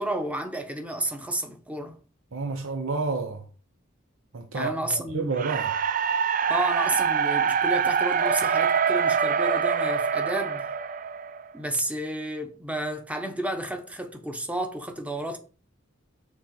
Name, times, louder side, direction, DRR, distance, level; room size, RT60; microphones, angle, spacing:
voice 1, 0.0-2.0 4.5-5.3 6.5-10.7 11.5-15.4, right 1 dB, 5° right, 0.9 m, -31 dB
voice 2, 2.3-3.4 4.3-5.7, right 4 dB, 80° right, 0.8 m, -30 dB
sound 1, 5.4-11.5, right 6 dB, 40° right, 0.4 m, -24 dB
6.4 x 3.7 x 4.7 m
head